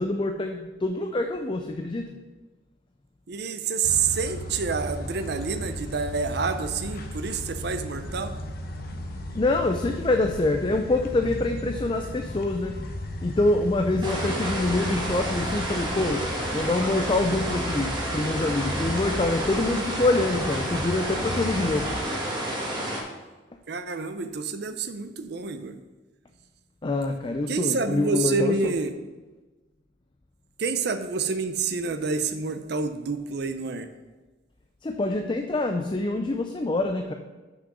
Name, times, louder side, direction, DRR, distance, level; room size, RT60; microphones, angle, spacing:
voice 1, 0.0-2.1 9.3-12.8 13.2-16.2 16.5-21.9 26.8-28.7 34.8-37.1, left 2 dB, 25° left, 5 dB, 0.4 m, -25 dB
voice 2, 3.3-8.3 14.2-14.5 23.7-25.8 27.5-29.1 30.6-33.9, right 4 dB, 55° right, 9 dB, 0.5 m, -28 dB
sound 1, 3.8-22.0, left 1 dB, 50° left, 0.8 m, -35 dB
sound 2, 14.0-23.0, right 1 dB, 25° right, 1.9 m, -30 dB
6.2 x 6.0 x 6.0 m, 1.2 s
head